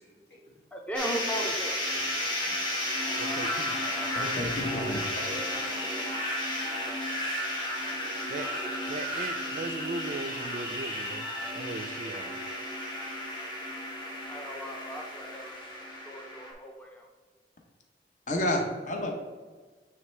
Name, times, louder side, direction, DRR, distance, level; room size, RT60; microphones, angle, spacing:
voice 1, 0.0-0.7 1.9-5.8, equal, 70° left, -3 dB, 1.8 m, -48 dB
voice 2, 0.7-1.7 14.3-17.1, right 1 dB, 5° left, 0 dB, 0.5 m, -37 dB
sound 1, 0.9-16.5, left 1 dB, 25° left, 1.1 m, -33 dB
voice 3, 3.2-3.8 8.3-8.5 8.9-11.2 11.6-12.3 18.6-18.7, right 3 dB, 45° right, 10 dB, 0.3 m, -38 dB
voice 4, 4.2-5.0 18.3-19.1, left 1 dB, 45° left, 2 dB, 0.8 m, -30 dB
9.2 x 3.3 x 3.2 m, 1.5 s
head